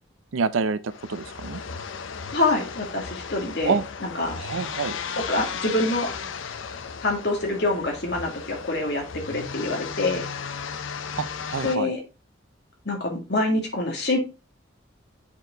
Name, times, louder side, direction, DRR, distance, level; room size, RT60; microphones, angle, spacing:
voice 1, 0.3-1.6 3.6-3.8 4.4-5.0 11.2-11.9, right 5 dB, 85° right, 0.6 m, -27 dB
sound 1, 0.9-11.8, left 6 dB, 75° left, 0.6 m, -35 dB
voice 2, 2.3-4.4 5.2-6.1 7.0-10.2 11.6-12.0 12.9-14.2, left 2 dB, 55° left, 2.1 m, -26 dB
7.1 x 4.6 x 3.9 m
head